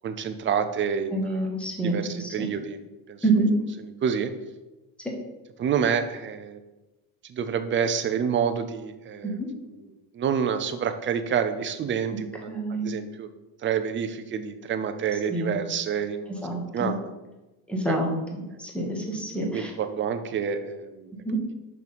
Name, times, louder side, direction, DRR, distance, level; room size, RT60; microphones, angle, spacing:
voice 1, 0.0-1.5 1.8-2.8 3.1-3.2 4.0-4.3 5.6-6.6 7.2-9.4 10.1-12.5 12.8-13.3 13.6-16.4 16.7-17.1 17.9-18.0 19.4-21.1, right 7 dB, 30° right, 9 dB, 0.5 m, -28 dB
voice 2, 1.1-2.5 3.2-3.5 9.2-9.5 12.5-12.9 15.3-15.5 16.4-16.9 17.7-18.1 18.6-19.7 21.2-21.4, right 2 dB, 5° left, 0 dB, 1.2 m, -27 dB
6.0 x 6.0 x 5.2 m, 1.0 s
cardioid pair, 170°, 39 cm